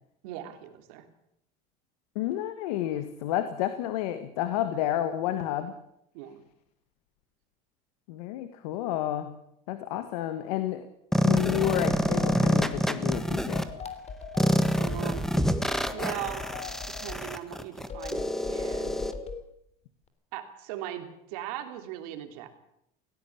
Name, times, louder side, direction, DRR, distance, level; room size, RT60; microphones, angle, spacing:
voice 1, 0.2-1.1 6.1-6.4 14.8-15.5 15.9-16.5 17.0-19.0 20.3-22.5, right 11 dB, 80° right, 7 dB, 3.1 m, -39 dB
voice 2, 2.1-5.7 8.1-9.4 9.7-10.9 11.2-13.7, left 12 dB, 85° left, 10 dB, 1.7 m, -30 dB
sound 1, 11.1-13.6 14.4-19.1, equal, ahead, 1.5 m, -27 dB
sound 2, 11.3-12.9 13.5-15.0 15.7-17.2 17.9-19.4, left 5 dB, 35° left, 3.2 m, -40 dB
17.5 x 17.0 x 8.7 m, 0.76 s
supercardioid pair, 105°, 19 cm